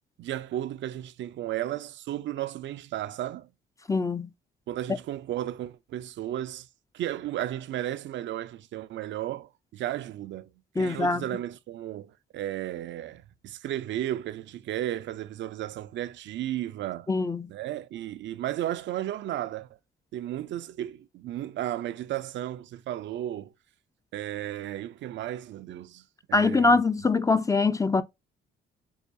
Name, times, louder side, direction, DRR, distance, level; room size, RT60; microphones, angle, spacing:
voice 1, 0.2-3.5 4.7-6.7 6.9-10.5 10.8-17.1 17.5-19.7 20.1-23.5 24.1-26.8, right 12 dB, 70° right, 0.4 m, -34 dB
voice 2, 3.9-4.3 10.8-11.2 17.1-17.5 26.3-28.0, left 3 dB, 15° left, 0.4 m, -23 dB
6.9 x 2.3 x 2.6 m
cardioid pair, 90°, 20 cm